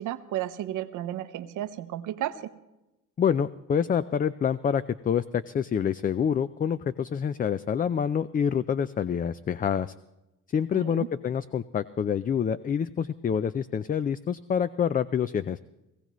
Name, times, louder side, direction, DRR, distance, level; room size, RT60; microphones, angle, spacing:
voice 1, 0.0-2.5 10.7-11.1, right 12 dB, 85° right, 11 dB, 0.8 m, -33 dB
voice 2, 3.2-9.9 10.5-15.6, left 7 dB, 30° left, 14 dB, 0.3 m, -27 dB
18.0 x 16.0 x 3.1 m, 0.96 s
cardioid pair, 90°, 30 cm